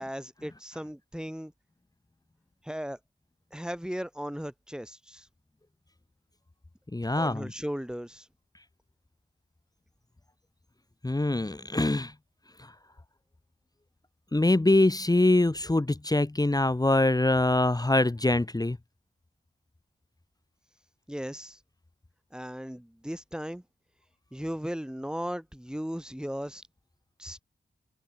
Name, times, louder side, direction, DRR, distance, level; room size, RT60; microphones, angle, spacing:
voice 1, 0.0-1.5 2.6-3.0 3.5-5.3 7.2-8.3 21.1-21.6 22.3-23.6 24.3-26.6 27.2-27.4, equal, 5° right, 5.8 m, -36 dB
voice 2, 6.9-7.5 11.0-12.1 14.3-18.8, left 2 dB, 20° left, 1.0 m, -24 dB
cardioid pair, 45°, 20 cm